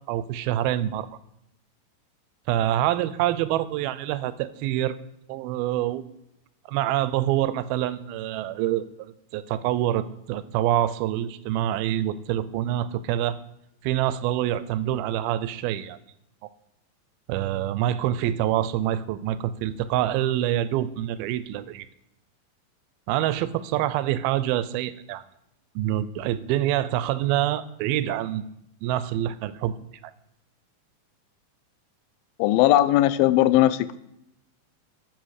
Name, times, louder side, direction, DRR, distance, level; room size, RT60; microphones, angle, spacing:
voice 1, 0.1-1.1 2.5-5.0 5.3-6.1 6.7-13.4 13.8-16.0 17.3-21.9 23.1-25.2 25.8-28.5 28.8-29.8, right 12 dB, 85° right, 15 dB, 2.5 m, -26 dB
voice 2, 32.4-34.0, left 14 dB, 85° left, 15 dB, 2.4 m, -19 dB
10.5 x 7.9 x 6.4 m, 0.82 s
omnidirectional pair, 4.3 m